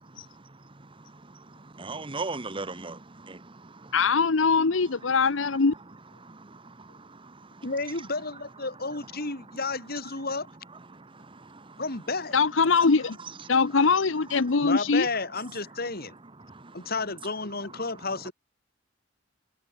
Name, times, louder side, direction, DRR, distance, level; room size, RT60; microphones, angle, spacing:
voice 1, 1.8-3.9 6.2-7.3 10.9-11.8 16.5-16.7, right 3 dB, 25° right, 1.3 m, -39 dB
voice 2, 3.9-5.7 12.3-13.2 13.5-15.1, left 4 dB, 75° left, 0.9 m, -22 dB
voice 3, 7.6-10.5 11.8-12.3 14.6-16.2 16.7-18.3, left 3 dB, 50° left, 3.8 m, -32 dB
head